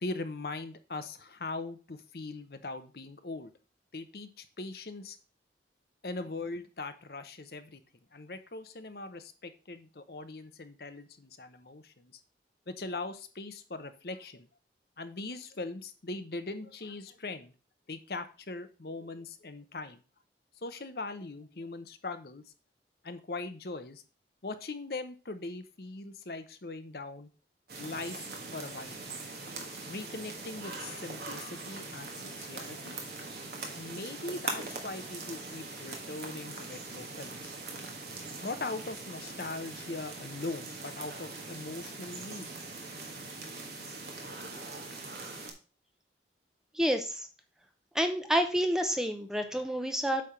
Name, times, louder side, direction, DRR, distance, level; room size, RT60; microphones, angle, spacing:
voice 1, 0.0-3.5 3.9-5.2 6.0-7.8 8.1-12.2 12.7-14.5 15.0-17.5 17.9-20.0 20.6-22.5 23.0-24.0 24.4-27.3 27.8-29.0 29.8-33.0 33.8-37.5 38.4-42.5, left 3 dB, 55° left, 10 dB, 0.8 m, -40 dB
sound 1, 27.7-45.5, right 3 dB, 60° right, 1.4 m, -42 dB
voice 2, 46.7-47.3 47.9-50.2, equal, 5° right, 6 dB, 0.7 m, -29 dB
8.5 x 3.5 x 5.7 m, 0.36 s
head